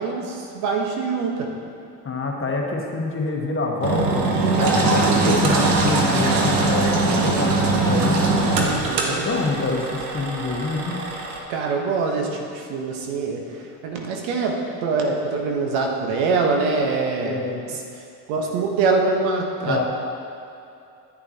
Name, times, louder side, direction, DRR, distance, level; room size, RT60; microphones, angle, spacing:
voice 1, 0.0-1.5 4.2-5.4 8.6-9.2 11.5-14.6 14.8-17.8 18.3-19.8, right 4 dB, 70° right, 1 dB, 1.4 m, -24 dB
voice 2, 2.0-8.2 9.0-11.0 17.2-17.8 19.6-19.8, left 3 dB, 25° left, 0 dB, 1.4 m, -26 dB
Engine, 3.8-11.4, right 2 dB, 90° right, 1.2 m, -21 dB
10.5 x 8.8 x 2.9 m, 2.6 s
hypercardioid pair, 65°, 48 cm